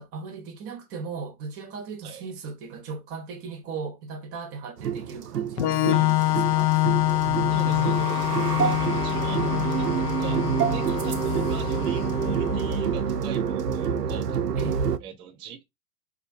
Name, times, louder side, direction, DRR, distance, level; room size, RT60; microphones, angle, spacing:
voice 1, 0.0-7.0 7.6-8.2 14.6-14.8, right 4 dB, 30° right, 0.9 m, -38 dB
sound 1, 4.8-15.0, right 7 dB, 90° right, 0.6 m, -27 dB
Organ, 5.6-13.1, left 17 dB, 50° left, 0.6 m, -26 dB
sound 2, 6.2-12.1, left 5 dB, 75° left, 0.9 m, -45 dB
voice 2, 7.5-14.4 15.0-15.7, right 7 dB, 10° right, 0.4 m, -41 dB
4.2 x 2.8 x 2.5 m
figure-of-eight pair, 100°, 46 cm